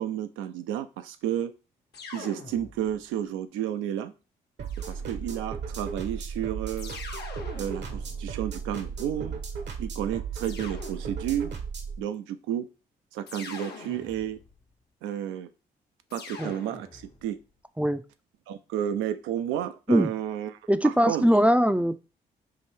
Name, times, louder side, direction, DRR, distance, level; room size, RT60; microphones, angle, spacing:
voice 1, 0.0-1.5 2.1-4.1 4.9-6.9 7.5-9.4 9.8-11.5 12.0-12.7 13.1-14.4 15.0-15.5 16.1-17.4 18.5-20.5 20.8-21.3, right 10 dB, 80° right, 10 dB, 0.4 m, -31 dB
sound 1, 1.9-3.1 4.7-5.5 6.8-9.1 10.4-11.5 13.3-14.6 16.1-17.3, left 4 dB, 55° left, 0.9 m, -44 dB
sound 2, 4.6-12.0, right 6 dB, 60° right, 0.9 m, -35 dB
voice 2, 20.7-22.0, equal, 5° right, 11 dB, 0.4 m, -21 dB
4.6 x 2.5 x 3.3 m, 0.32 s
hypercardioid pair, 40°, 20 cm